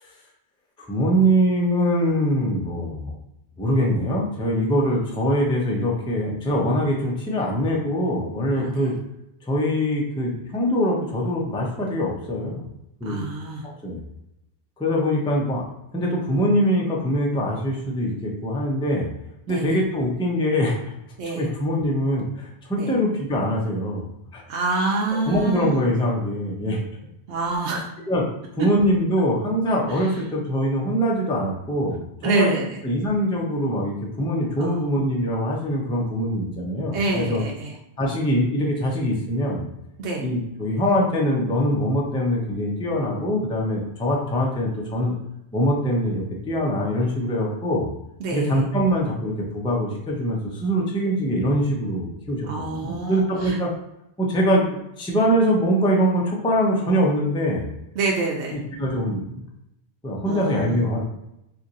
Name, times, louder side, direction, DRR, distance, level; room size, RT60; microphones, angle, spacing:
voice 1, 0.8-3.2 3.6-8.9 9.5-12.6 13.0-13.2 13.8-14.0 14.8-15.6 15.9-19.1 19.5-20.9 21.2-24.1 24.3-24.4 25.3-26.8 28.1-28.2 28.6-32.5 32.8-37.4 38.0-39.7 40.2-45.2 45.5-47.9 48.3-53.7 54.2-57.6 58.5-59.4 60.0-61.0, equal, 5° left, -2 dB, 0.4 m, -23 dB
voice 2, 13.0-13.6 19.5-19.7 21.2-21.4 22.8-22.9 24.5-25.8 27.3-27.9 32.2-32.6 34.6-34.8 36.9-37.7 40.0-40.2 48.2-48.6 52.5-53.6 58.0-58.6 60.2-60.8, right 3 dB, 75° right, -2 dB, 0.9 m, -27 dB
2.9 x 2.5 x 3.9 m, 0.85 s
omnidirectional pair, 1.2 m